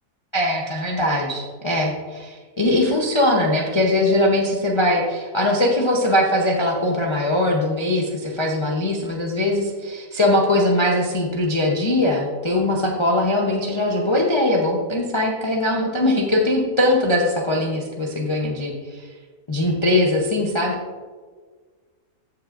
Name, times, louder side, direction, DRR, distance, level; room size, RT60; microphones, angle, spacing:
voice 1, 0.3-19.1 19.5-20.7, left 1 dB, 25° left, -2 dB, 0.6 m, -21 dB
14.5 x 5.8 x 2.5 m, 1.5 s
omnidirectional pair, 1.7 m